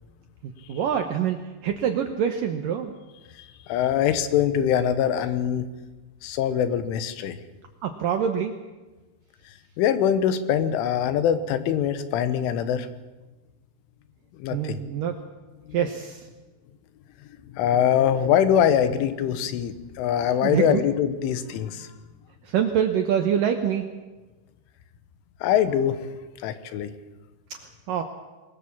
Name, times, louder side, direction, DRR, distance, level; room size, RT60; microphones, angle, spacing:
voice 1, 0.4-2.9 7.8-8.6 14.5-15.2 15.7-16.3 20.4-20.8 22.4-23.9 27.9-28.0, right 8 dB, 85° right, 5 dB, 1.9 m, -25 dB
voice 2, 3.7-5.7 6.2-7.4 9.8-12.9 14.4-14.8 15.7-15.8 17.5-21.9 25.4-26.0 26.4-26.9, left 9 dB, 85° left, 11 dB, 3.6 m, -23 dB
22.0 x 19.5 x 7.3 m, 1.2 s
omnidirectional pair, 5.5 m